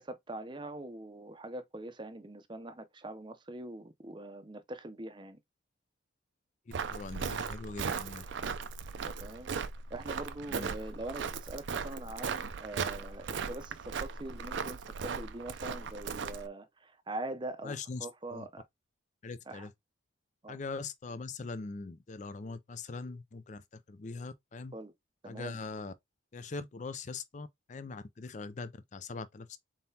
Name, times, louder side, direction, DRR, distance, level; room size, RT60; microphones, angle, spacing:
voice 1, 0.0-5.4 9.0-9.5 9.9-17.7 18.0-18.6 19.5-19.7 20.4-20.6 24.7-24.9 25.2-25.6, right 2 dB, 25° right, 0.6 m, -43 dB
Walk footsteps, 6.7-16.5, right 5 dB, 70° right, 0.5 m, -37 dB
voice 2, 6.9-8.3 10.5-10.7 17.6-18.5 19.2-19.7 20.5-24.7 25.3-25.9 26.3-29.6, left 4 dB, 40° left, 0.4 m, -42 dB
4.0 x 3.7 x 2.7 m
head